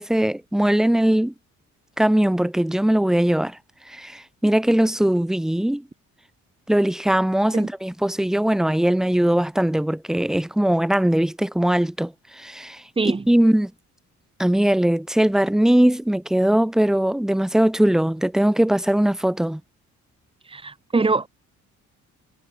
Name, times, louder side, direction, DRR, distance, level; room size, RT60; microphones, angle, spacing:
voice 1, 0.0-1.3 2.0-3.6 3.9-5.8 6.7-12.8 13.3-13.7 14.4-19.6, right 1 dB, ahead, 0.4 m, -20 dB
voice 2, 20.5-21.3, right 3 dB, 20° right, 1.1 m, -23 dB
cardioid pair, 90°, 30 cm